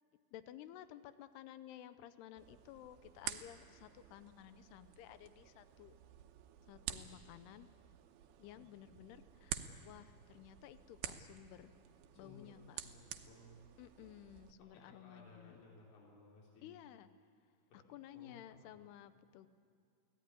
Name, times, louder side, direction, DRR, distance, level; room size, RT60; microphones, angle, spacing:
voice 1, 0.3-6.0 6.7-7.7 8.4-11.7 12.1-12.8 13.8-15.7 16.6-17.1 17.7-19.5, left 12 dB, 90° left, 12 dB, 2.9 m, -55 dB
sound 1, 2.4-14.5, right 11 dB, 75° right, 2.8 m, -50 dB
voice 2, 12.1-13.6 14.6-16.8 17.7-18.4, left 2 dB, 70° left, -3 dB, 5.7 m, -60 dB
24.0 x 17.5 x 9.6 m, 2.4 s
omnidirectional pair, 4.6 m